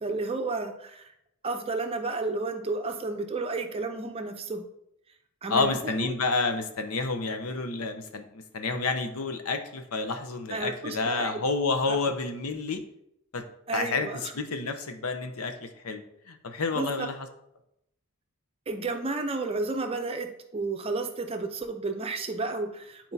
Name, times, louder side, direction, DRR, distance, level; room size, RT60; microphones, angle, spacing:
voice 1, 0.0-1.1 1.4-4.6 5.4-6.1 10.5-11.4 11.9-12.0 13.7-14.3 16.8-17.1 18.7-23.1, right 3 dB, 25° right, 5 dB, 0.6 m, -32 dB
voice 2, 5.5-12.8 13.3-13.4 13.7-17.3, left 3 dB, 85° left, 7 dB, 0.7 m, -29 dB
9.1 x 4.4 x 2.7 m, 0.78 s
head